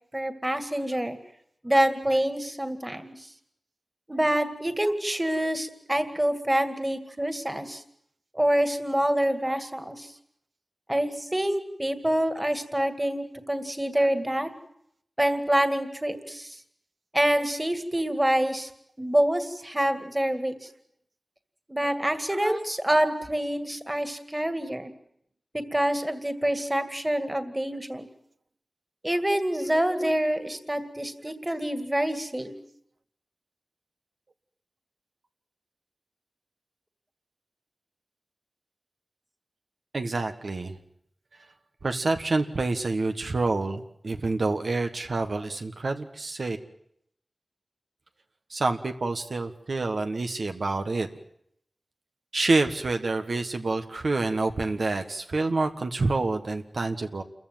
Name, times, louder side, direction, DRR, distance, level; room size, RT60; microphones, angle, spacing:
voice 1, 0.1-1.2 1.6-3.2 4.1-7.8 8.3-10.1 10.9-14.5 15.2-16.6 17.1-18.7 19.0-20.6 21.7-24.9 25.5-28.1 29.0-32.5, right 1 dB, 15° right, 9 dB, 2.2 m, -26 dB
voice 2, 39.9-40.7 41.8-46.6 48.5-51.1 52.3-57.2, right 3 dB, 80° right, 6 dB, 1.4 m, -27 dB
28.0 x 15.0 x 9.2 m, 0.72 s
wide cardioid pair, 65°, 0 cm